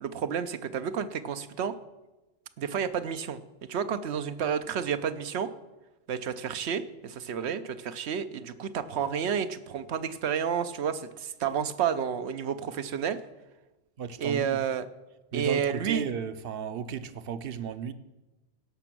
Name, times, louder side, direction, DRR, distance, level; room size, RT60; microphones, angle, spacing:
voice 1, 0.0-1.8 2.6-5.5 6.1-13.2 14.2-14.9 15.3-16.0, right 7 dB, 85° right, 11 dB, 1.0 m, -30 dB
voice 2, 14.0-14.6 15.3-17.9, right 7 dB, 65° right, 13 dB, 0.9 m, -34 dB
16.5 x 6.0 x 6.1 m, 1.1 s
omnidirectional pair, 1.1 m